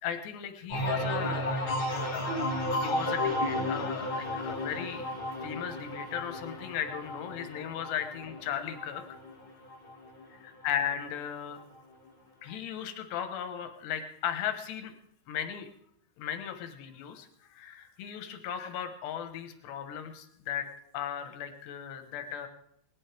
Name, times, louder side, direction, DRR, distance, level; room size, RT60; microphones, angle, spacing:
voice 1, 0.0-5.1 5.4-9.0 10.3-11.6 12.4-14.9 15.3-15.7 16.2-20.7 20.9-22.5, left 9 dB, 90° left, 7 dB, 3.4 m, -36 dB
sound 1, 0.7-10.2 10.6-11.2, left 1 dB, 65° left, 0.5 m, -33 dB
20.0 x 17.5 x 3.5 m, 0.75 s
omnidirectional pair, 4.7 m